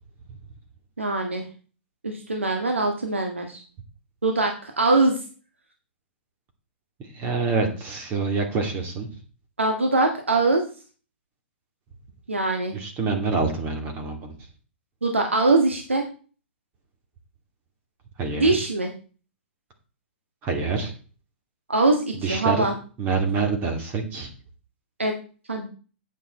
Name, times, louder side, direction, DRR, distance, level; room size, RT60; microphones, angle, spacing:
voice 1, 1.0-1.5 2.0-3.6 4.2-5.2 9.6-10.6 12.3-12.8 15.0-16.0 18.4-18.9 21.7-22.7 25.0-25.1 25.5-25.7, right 2 dB, 85° right, 3 dB, 1.8 m, -22 dB
voice 2, 7.1-9.1 12.7-14.3 18.2-18.6 20.4-20.9 22.1-22.7 23.0-24.3, right 4 dB, 30° right, 4 dB, 2.5 m, -26 dB
8.9 x 8.7 x 4.3 m, 0.37 s
figure-of-eight pair, 115°, 7 cm